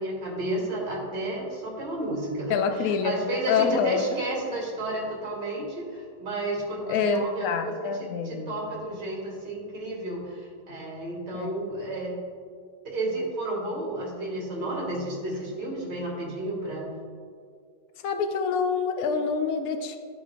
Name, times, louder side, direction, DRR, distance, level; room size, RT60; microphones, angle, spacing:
voice 1, 0.0-12.1 12.8-16.9, right 1 dB, 65° right, -4 dB, 2.7 m, -32 dB
voice 2, 2.5-3.1 3.5-4.2 6.9-8.7 11.3-11.5 18.0-20.0, left 6 dB, 65° left, 6 dB, 1.0 m, -26 dB
14.0 x 5.0 x 2.5 m, 2.1 s
omnidirectional pair, 2.0 m